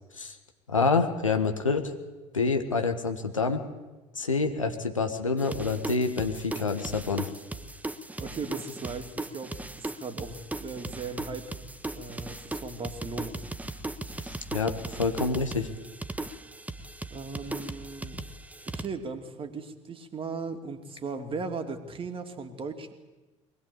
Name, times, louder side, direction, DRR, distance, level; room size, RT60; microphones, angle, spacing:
voice 1, 0.7-1.9 2.3-3.6 4.2-7.3 14.5-15.7, left 4 dB, 85° left, 5 dB, 1.8 m, -27 dB
sound 1, 5.4-18.9, right 2 dB, 10° right, 1.6 m, -38 dB
voice 2, 8.2-11.6 11.9-13.4 17.1-18.2 18.8-22.9, right 4 dB, 35° right, 7 dB, 3.0 m, -37 dB
23.0 x 20.0 x 8.7 m, 1.2 s
figure-of-eight pair, 65°, 16 cm